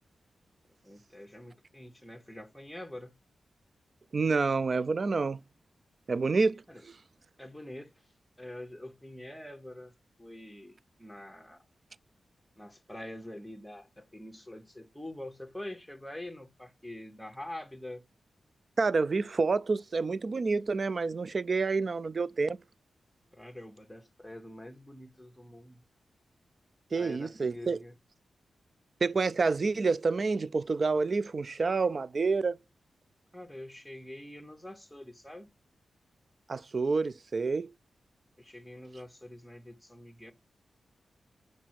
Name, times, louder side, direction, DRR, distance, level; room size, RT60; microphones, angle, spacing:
voice 1, 0.8-3.1 6.7-6.8 7.4-8.0 8.4-9.9 10.2-11.6 12.6-18.0 23.3-25.8 26.9-27.9 33.3-35.5 38.4-40.3, left 1 dB, 5° left, 1.1 m, -45 dB
voice 2, 4.1-5.4 6.1-6.6 18.8-22.6 26.9-27.8 29.0-32.6 36.5-37.7, right 4 dB, 45° right, 0.3 m, -28 dB
5.9 x 4.2 x 4.7 m
wide cardioid pair, 95°, 0 cm